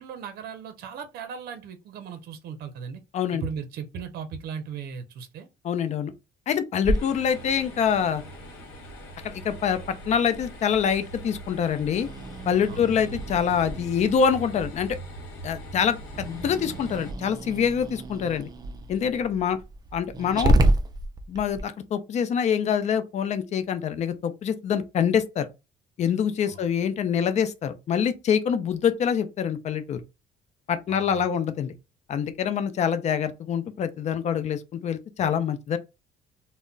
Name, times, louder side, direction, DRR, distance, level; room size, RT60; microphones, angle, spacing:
voice 1, 0.0-3.0 3.3-5.5 12.7-12.9 26.5-26.6 30.9-31.3, right 6 dB, 70° right, 0.6 m, -37 dB
voice 2, 5.6-6.1 6.5-8.2 9.2-9.8 10.1-12.1 12.5-15.0 15.4-18.5 18.9-19.6 19.9-20.5 21.3-25.5 26.0-30.0 30.7-31.7 32.1-35.8, left 7 dB, 45° left, 0.5 m, -25 dB
Growling, 6.8-21.6, right 1 dB, 25° right, 0.4 m, -31 dB
sound 1, 6.9-17.1, right 1 dB, 85° left, 0.9 m, -42 dB
2.2 x 2.1 x 3.7 m
cardioid pair, 110°, 17 cm